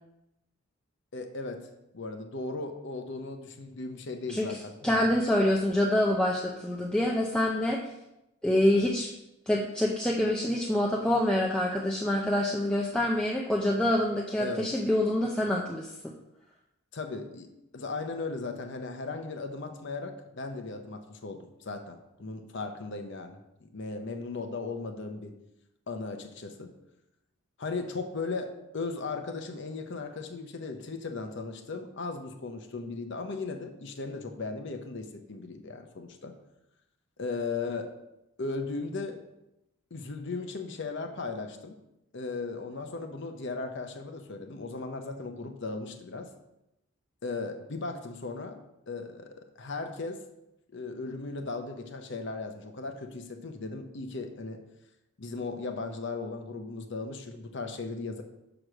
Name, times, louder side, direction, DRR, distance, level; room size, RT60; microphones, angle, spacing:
voice 1, 1.1-1.6 1.9-5.2 14.4-14.7 16.9-25.3 25.9-26.7 27.6-36.3 37.2-37.9 38.4-39.2 39.9-41.7 42.1-46.3 47.2-48.6 48.9-50.2 50.7-54.6 55.2-58.2, left 3 dB, 55° left, 5 dB, 0.7 m, -37 dB
voice 2, 4.3-7.8 8.4-9.1 9.5-16.1, left 1 dB, 5° left, -3 dB, 0.5 m, -26 dB
6.2 x 4.9 x 6.3 m, 0.89 s
head